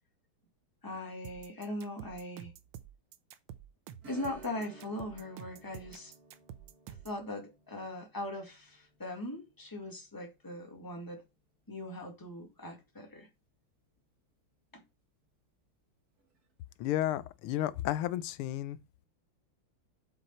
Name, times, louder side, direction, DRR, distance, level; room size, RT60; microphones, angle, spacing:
voice 1, 0.8-2.5 4.1-6.1 7.0-11.2 11.7-13.3 14.7-14.8, left 1 dB, 10° left, 1.8 m, -40 dB
sound 1, 1.2-7.2, right 10 dB, 80° right, 1.6 m, -49 dB
Strum, 4.0-13.2 13.5-13.6 16.2-16.4 16.8-16.9, right 3 dB, 45° right, 2.3 m, -57 dB
voice 2, 16.8-18.8, left 13 dB, 90° left, 1.5 m, -32 dB
7.7 x 6.1 x 4.3 m
omnidirectional pair, 2.3 m